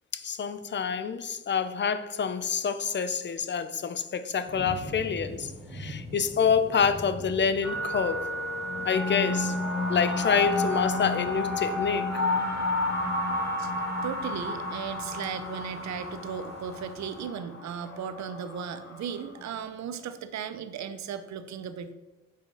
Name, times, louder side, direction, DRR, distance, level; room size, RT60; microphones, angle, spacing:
voice 1, 0.1-8.2 8.8-9.5 9.9-12.2, left 6 dB, 35° left, 0.7 m, -27 dB
sound 1, 4.5-17.2, right 1 dB, 20° right, 1.6 m, -45 dB
sound 2, 7.6-19.3, left 2 dB, 60° left, 2.3 m, -32 dB
sound 3, 8.5-19.4, left 3 dB, ahead, 2.0 m, -36 dB
voice 2, 14.0-21.9, right 7 dB, 65° right, 0.8 m, -36 dB
7.5 x 4.8 x 5.5 m
cardioid pair, 90°, 30 cm